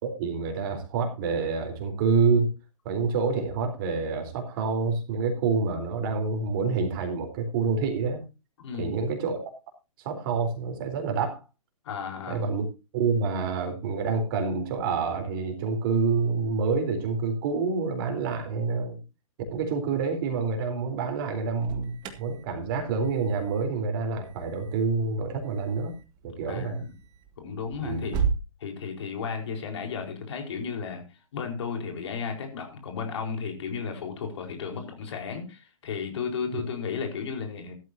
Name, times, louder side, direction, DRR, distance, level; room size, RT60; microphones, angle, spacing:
voice 1, 0.0-2.5 2.9-8.2 8.8-9.5 10.0-11.4 12.3-12.7 12.9-19.0 19.5-25.9 26.2-26.8 27.8-28.2 36.5-36.6, right 4 dB, 40° right, 5 dB, 3.9 m, -27 dB
voice 2, 8.6-9.0 11.8-12.4 26.5-26.9 27.4-28.2 28.6-31.0 31.3-37.7, left 6 dB, 55° left, 4 dB, 4.5 m, -34 dB
Alarm, 21.3-28.4, right 6 dB, 25° right, 2.1 m, -36 dB
16.5 x 13.0 x 2.8 m, 0.28 s
figure-of-eight pair, 125°, 18 cm